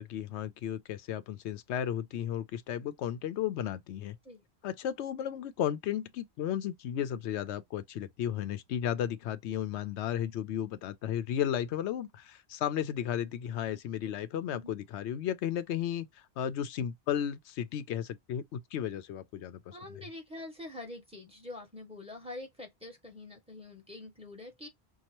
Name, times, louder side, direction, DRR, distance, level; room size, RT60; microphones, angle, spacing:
voice 1, 0.0-4.2 4.6-16.1 16.4-19.8, left 10 dB, 90° left, 0.9 m, -34 dB
voice 2, 19.7-24.7, left 2 dB, 5° right, 1.5 m, -45 dB
5.4 x 2.3 x 2.9 m
omnidirectional pair, 1.1 m